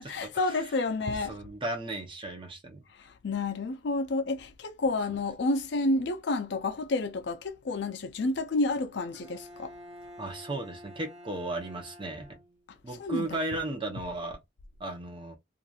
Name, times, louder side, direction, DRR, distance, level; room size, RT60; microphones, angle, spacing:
voice 1, 0.0-1.4 3.0-9.7 13.0-13.4, left 2 dB, 65° left, 0.5 m, -30 dB
voice 2, 1.3-2.8 10.2-12.3 12.8-14.4 14.8-15.3, right 2 dB, 25° right, 0.7 m, -35 dB
Bowed string instrument, 9.1-12.9, equal, 75° right, 1.0 m, -49 dB
2.8 x 2.5 x 2.3 m
head